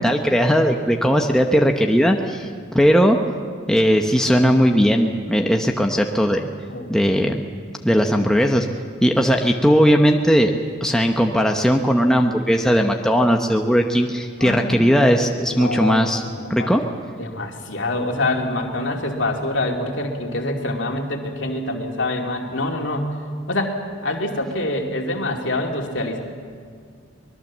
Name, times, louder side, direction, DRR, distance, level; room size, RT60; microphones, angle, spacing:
voice 1, 0.0-3.2 3.7-6.5 6.9-7.4 7.8-8.7 9.0-10.5 10.8-16.2 16.5-16.8, equal, 5° left, 2 dB, 0.9 m, -18 dB
voice 2, 14.4-14.9 15.5-16.0 16.2-16.9 17.2-23.2 23.5-26.2, left 2 dB, 60° left, 2 dB, 2.7 m, -25 dB
24.5 x 20.5 x 7.4 m, 2.1 s
head